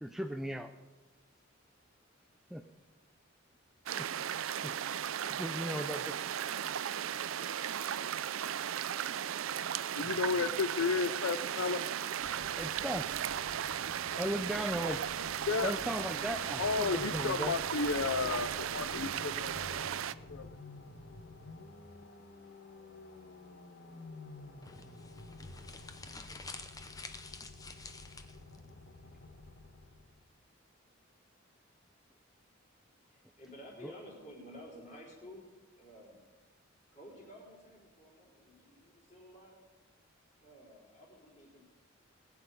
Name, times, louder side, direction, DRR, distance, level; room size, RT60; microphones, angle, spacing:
voice 1, 0.0-0.7 2.5-2.6 4.0-4.1 4.6-4.7 5.3-6.1 12.6-13.1 14.2-15.0 15.6-17.6 33.8-33.9, equal, ahead, 0.4 m, -37 dB
sound 1, 3.9-20.1, right 9 dB, 85° right, 0.4 m, -36 dB
voice 2, 9.9-11.8 15.5-15.7 16.6-19.8 20.3-20.5, left 5 dB, 85° left, 0.5 m, -33 dB
sound 2, 12.2-30.3, left 2 dB, 60° left, 1.3 m, -51 dB
sound 3, 24.6-28.6, left 3 dB, 20° left, 0.8 m, -49 dB
voice 3, 33.1-35.5 35.8-36.4 36.9-39.6 40.4-41.6, equal, 35° left, 4.3 m, -52 dB
20.0 x 8.6 x 5.2 m
head